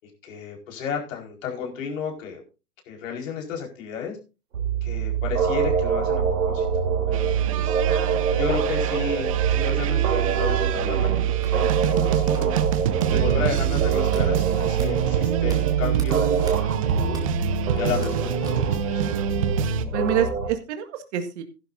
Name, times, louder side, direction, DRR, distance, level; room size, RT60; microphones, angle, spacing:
voice 1, 0.0-2.4 2.9-4.2 4.8-6.7 7.1-7.8 8.4-12.5 13.1-17.2 17.7-19.2, left 6 dB, 55° left, 1 dB, 4.8 m, -33 dB
sound 1, 4.5-20.5, right 7 dB, 75° right, 3.3 m, -24 dB
sound 2, 7.1-19.9, right 11 dB, 25° right, 0.4 m, -28 dB
voice 2, 7.5-8.2 19.9-21.4, right 9 dB, 45° right, 7 dB, 2.0 m, -28 dB
sound 3, 11.0-18.9, right 3 dB, 10° right, 2.4 m, -41 dB
15.0 x 11.5 x 2.6 m, 0.30 s
hypercardioid pair, 125°, 47 cm